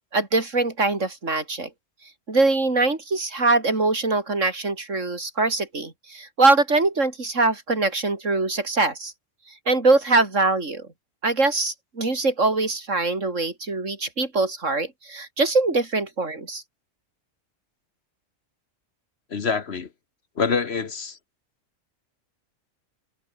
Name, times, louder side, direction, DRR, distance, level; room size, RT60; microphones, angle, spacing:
voice 1, 0.1-1.7 2.3-9.1 9.7-10.9 11.2-16.6, right 3 dB, 65° right, 4.0 m, -23 dB
voice 2, 19.3-19.9 20.4-21.2, left 5 dB, 55° left, 1.4 m, -25 dB
omnidirectional pair, 1.4 m